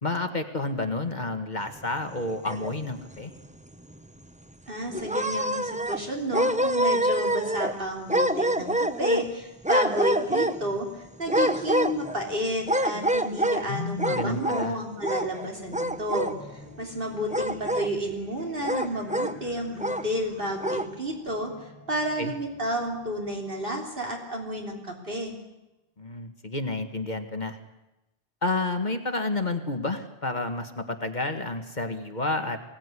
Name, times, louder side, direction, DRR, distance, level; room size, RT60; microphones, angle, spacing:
voice 1, 0.0-3.3 13.7-14.8 22.2-22.3 26.0-27.6 28.4-32.6, left 2 dB, 45° left, 7 dB, 1.8 m, -30 dB
sound 1, 2.1-3.0 3.4-3.5 3.9-4.0 4.9-6.1 6.3-7.8 8.1-9.3 9.6-10.8 11.3-12.2 12.7-13.6 14.0-14.7 15.0-15.5 15.7-16.3 17.3-17.9 18.6-19.3 19.8-20.0 20.6-20.9, right 1 dB, 10° right, 0.7 m, -26 dB
voice 2, 4.7-25.4, equal, 60° right, 1 dB, 3.6 m, -31 dB
sound 2, 14.7-24.9, equal, 10° left, 6.5 m, -50 dB
23.5 x 17.5 x 9.9 m, 0.97 s
omnidirectional pair, 1.0 m